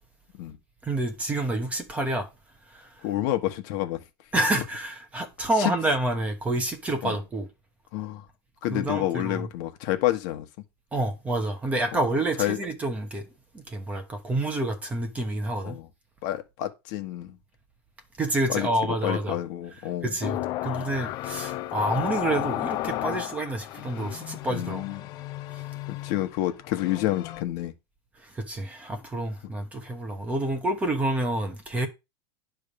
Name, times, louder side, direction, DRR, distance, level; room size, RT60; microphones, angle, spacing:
voice 1, 0.8-2.3 2.7-2.9 4.3-7.5 8.7-9.5 10.9-13.3 13.5-15.8 18.2-19.4 20.0-24.9 28.2-31.9, right 2 dB, 10° right, 1.1 m, -28 dB
voice 2, 3.0-4.0 5.6-5.7 7.0-7.2 7.9-8.2 8.6-10.4 11.9-12.0 12.4-12.6 15.6-15.9 16.2-17.4 18.5-18.7 19.0-20.1 24.5-25.0 25.9-27.7, left 14 dB, 50° left, 1.3 m, -28 dB
sound 1, 20.2-27.4, left 15 dB, 30° left, 0.5 m, -33 dB
10.5 x 3.5 x 6.9 m
supercardioid pair, 170°, 13 cm